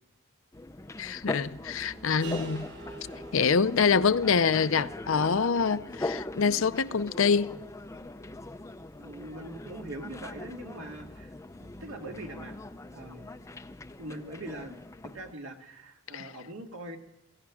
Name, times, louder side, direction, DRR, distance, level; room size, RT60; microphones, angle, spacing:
sound 1, 0.5-15.3, left 2 dB, 15° left, 0.4 m, -41 dB
voice 1, 1.0-2.7 3.3-7.6 16.1-16.3, left 5 dB, 65° left, 0.6 m, -25 dB
sound 2, 2.2-8.0, right 2 dB, 60° right, 3.7 m, -47 dB
voice 2, 9.0-11.3 11.6-12.6 12.9-13.3 14.0-14.8 15.1-17.0, right 1 dB, 75° right, 2.0 m, -42 dB
16.5 x 16.0 x 4.9 m
head